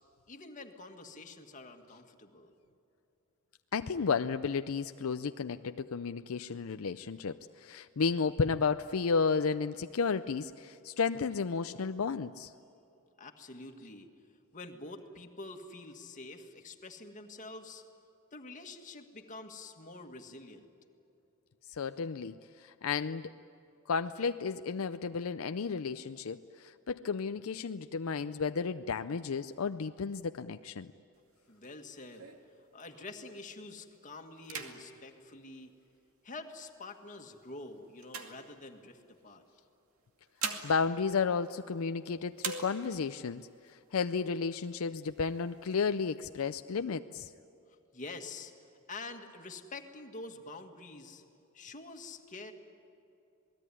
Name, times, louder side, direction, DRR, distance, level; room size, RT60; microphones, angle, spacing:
voice 1, 0.3-2.5 13.2-14.1 14.5-17.8 18.3-20.7 31.5-32.3 32.7-35.7 36.2-39.4 47.7-48.5 48.9-51.2 51.5-52.5, left 3 dB, 40° left, 4 dB, 1.8 m, -47 dB
voice 2, 3.7-12.5 21.7-23.3 23.9-30.9 40.6-47.3, left 5 dB, 75° left, 10 dB, 0.5 m, -33 dB
sound 1, 31.1-33.3 33.8-34.0 34.4-36.3 37.0-39.1 40.0-42.0 42.4-43.2 43.7-43.8 44.0-44.7 45.2-46.1, right 5 dB, 80° right, 2.4 m, -44 dB
27.5 x 19.5 x 9.9 m, 2.7 s
head